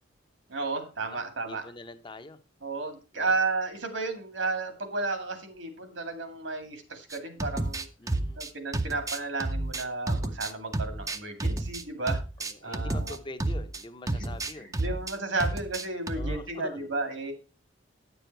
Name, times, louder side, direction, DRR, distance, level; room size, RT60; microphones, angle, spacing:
voice 1, 0.5-1.6 2.6-7.9 8.4-12.2 12.6-13.2 14.1-17.3, right 3 dB, 80° right, 2.1 m, -33 dB
voice 2, 1.0-2.4 3.1-3.3 8.0-8.4 12.4-15.0 16.1-16.8, left 2 dB, 25° left, 0.7 m, -44 dB
sound 1, 7.1-13.8 14.1-15.1 15.4-16.4, right 2 dB, 20° right, 0.5 m, -31 dB
9.9 x 7.0 x 4.5 m
head